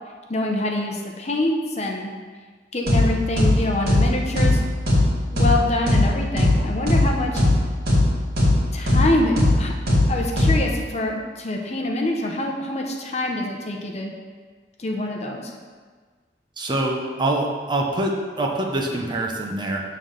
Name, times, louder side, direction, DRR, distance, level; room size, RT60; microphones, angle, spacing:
voice 1, 0.3-2.1 2.7-4.6 5.3-7.4 8.7-9.7 10.1-14.1 14.8-15.5, left 1 dB, 40° left, 1 dB, 0.8 m, -25 dB
sound 1, 2.9-3.0 3.4-3.5 3.9-4.0 4.4-4.5 4.9-5.0 5.4-5.5 5.9-6.0 6.4-6.5 6.9-7.0 7.4-7.5 7.9-8.0 8.4-8.5 8.9-9.0 9.4-9.5 9.9-10.0 10.4-10.5, left 2 dB, 60° right, 2.0 m, -17 dB
voice 2, 16.6-19.8, right 1 dB, 25° right, 0 dB, 0.8 m, -25 dB
7.3 x 3.9 x 6.4 m, 1.5 s
head